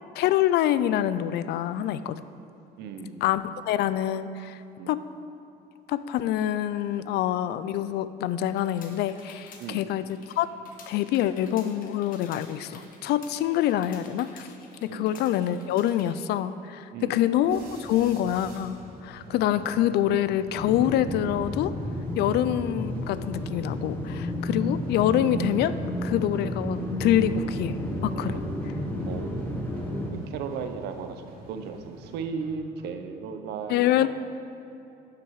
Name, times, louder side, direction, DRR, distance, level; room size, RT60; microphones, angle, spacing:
voice 1, 0.2-2.2 3.2-5.0 5.9-10.0 10.4-10.5 10.9-14.5 14.8-18.8 19.0-21.8 22.1-25.8 26.0-28.4 33.7-34.1, left 11 dB, 75° left, 14 dB, 0.4 m, -26 dB
voice 2, 2.8-3.2 4.8-5.0 7.0-7.2 9.6-9.9 14.9-15.2 16.9-17.2 19.3-19.4 22.2-22.4 24.5-24.8 28.3-28.4 29.0-29.6 30.1-34.1, right 6 dB, 80° right, 7 dB, 0.8 m, -36 dB
sound 1, 8.4-16.2, left 4 dB, 55° left, 1.4 m, -51 dB
sound 2, 17.5-32.8, right 2 dB, 65° right, 2.2 m, -48 dB
sound 3, 20.5-30.1, equal, 10° left, 1.2 m, -32 dB
12.0 x 6.1 x 4.8 m, 2.8 s
cardioid pair, 110°, 17 cm